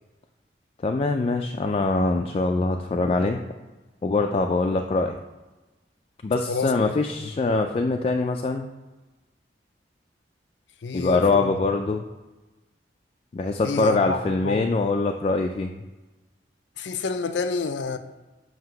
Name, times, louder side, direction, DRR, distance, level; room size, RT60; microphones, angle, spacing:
voice 1, 0.8-3.4 4.0-5.2 6.2-8.7 10.9-12.0 13.3-15.8, left 3 dB, 35° left, 3 dB, 0.3 m, -23 dB
voice 2, 6.5-6.9 10.8-11.6 13.6-14.7 16.8-18.0, left 4 dB, 85° left, 9 dB, 0.5 m, -29 dB
7.6 x 2.8 x 5.6 m, 1.2 s
head